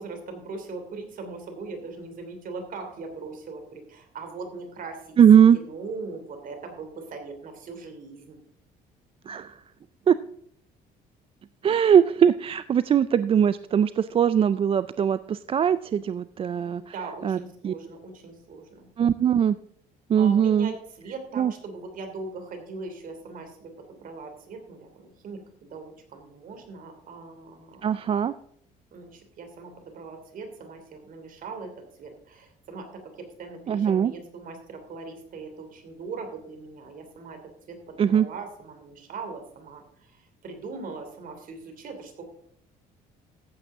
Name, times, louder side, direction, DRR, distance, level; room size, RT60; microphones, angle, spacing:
voice 1, 0.0-5.1 5.6-8.4 16.8-18.9 20.2-27.9 28.9-37.4 37.7-42.2, right 4 dB, 55° right, 5 dB, 2.9 m, -40 dB
voice 2, 5.2-5.6 9.3-9.6 10.1-10.2 11.6-16.8 17.2-17.4 17.6-17.7 19.0-19.6 20.1-20.7 21.4-21.5 27.8-28.3 33.7-34.1 38.0-38.3, right 8 dB, 35° right, 15 dB, 0.3 m, -20 dB
14.5 x 8.4 x 3.7 m, 0.70 s
cardioid pair, 110°, 17 cm